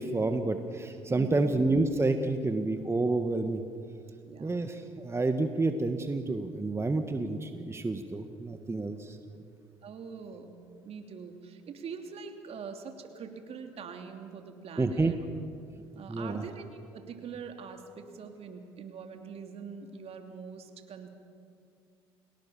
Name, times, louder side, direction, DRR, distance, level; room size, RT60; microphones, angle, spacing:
voice 1, 0.0-3.6 4.4-9.2 14.8-15.1 16.1-16.4, right 2 dB, 20° right, 7 dB, 1.7 m, -29 dB
voice 2, 1.1-1.5 4.3-4.6 9.8-10.6 10.8-15.2 15.9-21.1, right 6 dB, 50° right, 5 dB, 2.9 m, -43 dB
30.0 x 17.5 x 7.1 m, 2.4 s
hypercardioid pair, 55°, 13 cm